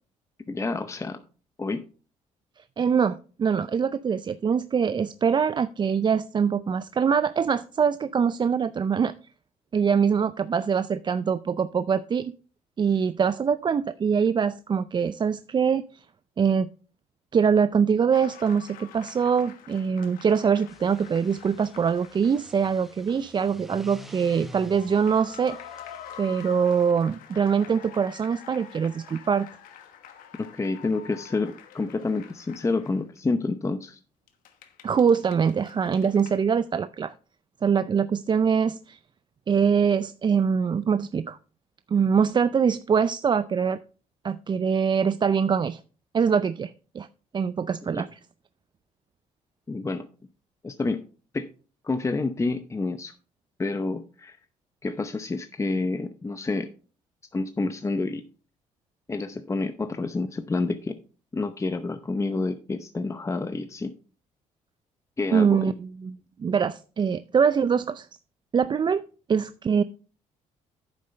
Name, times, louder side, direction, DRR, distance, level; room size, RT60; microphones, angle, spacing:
voice 1, 0.5-1.2 1.6-1.8 30.3-34.0 47.9-48.0 49.7-50.1 50.6-51.0 51.3-51.5 51.8-53.1 53.6-54.4 54.8-56.7 57.3-58.2 59.1-60.9 61.3-63.9 65.2-65.7, left 3 dB, 20° left, 9 dB, 0.7 m, -28 dB
voice 2, 2.8-9.1 9.7-12.3 12.8-15.8 16.4-16.7 17.3-25.6 26.2-29.5 34.8-37.1 37.6-39.0 39.5-41.4 41.9-43.8 44.2-45.8 46.1-47.1 47.3-48.1 65.3-66.1 66.4-68.1 68.5-69.0 69.3-69.8, right 6 dB, 35° right, 14 dB, 0.4 m, -23 dB
sound 1, 18.1-23.3 23.5-23.6 24.5-33.2 34.3-36.4, left 9 dB, 80° left, 1.2 m, -47 dB
sound 2, 20.6-26.9, left 1 dB, ahead, 1.2 m, -49 dB
9.6 x 7.5 x 3.2 m, 0.37 s
supercardioid pair, 75°, 14 cm